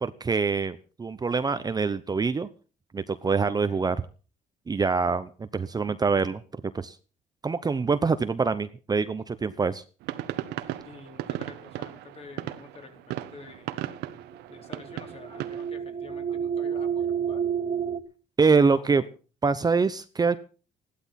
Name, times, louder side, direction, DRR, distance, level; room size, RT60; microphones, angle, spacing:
voice 1, 0.0-2.5 2.9-4.0 4.7-6.4 6.7-7.0 7.4-9.8 18.4-19.0 19.4-20.4, right 4 dB, 25° right, 12 dB, 0.9 m, -25 dB
sound 1, 10.0-15.7, right 14 dB, 85° right, 1.3 m, -36 dB
voice 2, 10.8-13.8 14.5-17.5 18.6-19.2, left 4 dB, 35° left, 5 dB, 3.8 m, -48 dB
sound 2, 14.1-18.0, right 8 dB, 40° right, 1.8 m, -30 dB
15.5 x 12.5 x 5.9 m, 0.38 s
cardioid pair, 110°, 17 cm